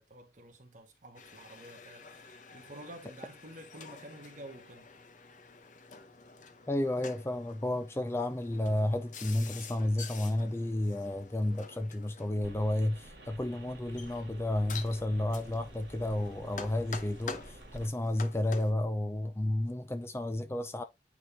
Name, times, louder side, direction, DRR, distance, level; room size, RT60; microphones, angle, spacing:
voice 1, 0.0-4.9, right 1 dB, 45° right, 1.7 m, -50 dB
sound 1, 1.1-18.7, left 5 dB, 45° left, 0.9 m, -48 dB
voice 2, 6.7-20.8, left 1 dB, 15° left, 0.4 m, -32 dB
sound 2, 12.4-17.9, right 1 dB, 60° right, 2.0 m, -51 dB
9.1 x 3.8 x 2.8 m
head